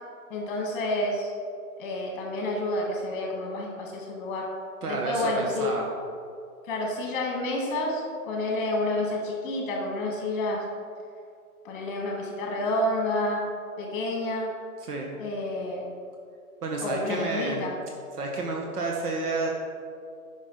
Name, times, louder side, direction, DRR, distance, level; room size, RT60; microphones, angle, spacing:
voice 1, 0.3-1.3 1.8-4.5 4.9-5.7 6.6-10.6 11.6-13.4 13.8-14.5 15.2-15.8 16.8-17.7, left 1 dB, 35° left, 0 dB, 2.0 m, -29 dB
voice 2, 4.8-5.9 14.9-15.1 16.6-17.7 18.2-19.5, right 3 dB, 85° right, -1 dB, 1.5 m, -30 dB
9.6 x 6.0 x 4.0 m, 2.3 s
hypercardioid pair, 150°, 45 cm